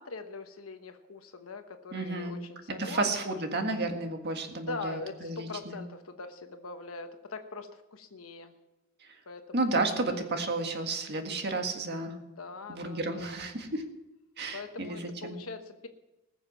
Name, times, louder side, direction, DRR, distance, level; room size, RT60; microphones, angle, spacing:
voice 1, 0.0-3.8 4.6-8.5 9.3-10.4 12.4-13.7 14.5-15.9, left 3 dB, 75° left, 7 dB, 1.1 m, -42 dB
voice 2, 1.9-2.4 2.8-5.8 9.5-12.2 12.7-13.9 14.4-15.4, right 2 dB, 50° right, 5 dB, 1.8 m, -32 dB
20.0 x 7.3 x 5.9 m, 1.0 s
head